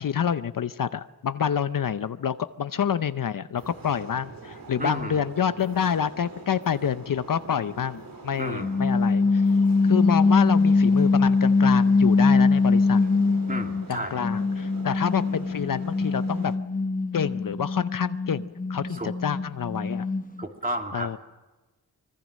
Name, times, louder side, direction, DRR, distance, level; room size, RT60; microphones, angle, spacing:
voice 1, 0.0-9.4 9.8-13.0 13.9-16.5 17.1-20.1 20.9-21.2, left 8 dB, 60° left, 12 dB, 0.7 m, -28 dB
sound 1, 3.6-16.6, right 3 dB, 60° right, 2.9 m, -44 dB
voice 2, 4.8-5.2 8.4-8.8 13.5-14.2 18.9-19.1 20.4-21.1, right 1 dB, 20° right, 2 dB, 2.7 m, -32 dB
sound 2, 8.6-13.9 14.2-20.4, left 3 dB, 20° left, 1.0 m, -22 dB
25.5 x 21.5 x 6.4 m, 1.2 s
wide cardioid pair, 120°, 38 cm